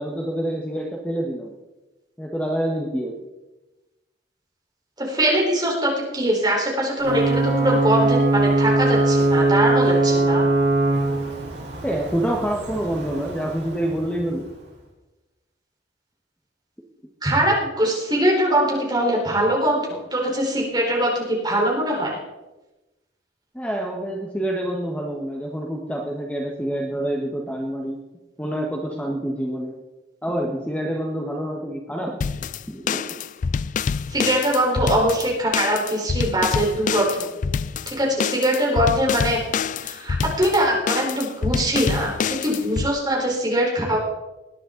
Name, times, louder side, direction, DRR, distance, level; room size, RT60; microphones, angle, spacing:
voice 1, 0.0-1.5 2.2-3.1 11.8-14.5 23.5-28.0 28.4-29.8 30.2-33.0, right 1 dB, 10° left, 0 dB, 1.3 m, -27 dB
voice 2, 5.0-10.4 17.2-22.2 34.1-37.3 37.8-39.4 39.8-42.1 42.4-44.0, right 1 dB, 25° right, -3 dB, 4.2 m, -22 dB
Ocean / Boat Water vehicle / Alarm, 7.0-14.6, right 2 dB, 70° right, 4.2 m, -21 dB
sound 1, 32.2-42.9, left 6 dB, 45° left, 0.3 m, -26 dB
20.0 x 10.0 x 3.9 m, 1.1 s
head